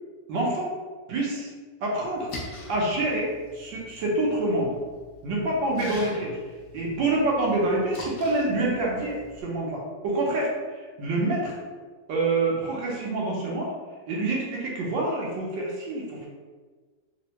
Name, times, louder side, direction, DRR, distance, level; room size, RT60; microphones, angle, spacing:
voice 1, 0.3-0.7 1.1-1.5 1.8-2.3 2.7-4.7 5.2-6.4 6.7-11.6 12.1-13.7 14.1-16.3, right 2 dB, 80° right, -3 dB, 1.4 m, -27 dB
Splash splatter, 2.1-9.4, left 2 dB, 70° left, 0.6 m, -44 dB
3.6 x 2.1 x 2.8 m, 1.4 s
omnidirectional pair, 2.0 m